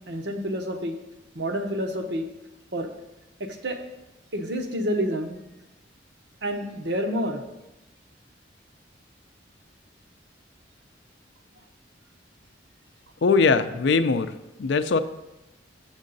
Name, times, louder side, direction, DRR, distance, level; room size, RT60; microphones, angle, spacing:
voice 1, 0.1-1.0 1.3-2.3 2.7-2.9 3.4-3.8 4.3-5.4 6.4-7.4, equal, 65° right, 4 dB, 0.9 m, -28 dB
voice 2, 13.2-14.3 14.6-15.0, left 4 dB, 70° left, 11 dB, 0.4 m, -21 dB
7.4 x 7.2 x 4.0 m, 0.98 s
head